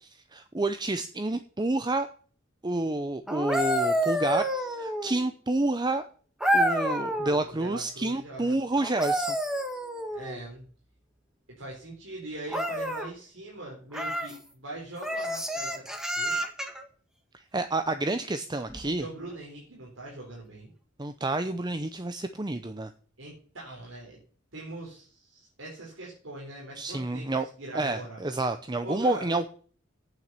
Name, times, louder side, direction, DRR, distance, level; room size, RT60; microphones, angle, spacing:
voice 1, 0.0-2.1 2.6-6.1 6.5-9.4 17.3-19.0 21.0-22.9 26.8-27.5 27.7-29.5, right 2 dB, 20° right, 10 dB, 0.6 m, -29 dB
sound 1, 3.3-5.3 6.4-7.4 8.8-10.4 12.5-13.1 13.9-14.4 15.0-16.8 18.7-18.9, equal, 5° right, 1.5 m, -29 dB
voice 2, 7.1-8.8 10.1-10.6 11.6-15.8 16.2-16.4 18.8-20.7 23.2-24.2 24.5-28.2 28.8-29.3, right 2 dB, 85° right, -3 dB, 4.1 m, -42 dB
9.0 x 7.4 x 8.2 m, 0.43 s
head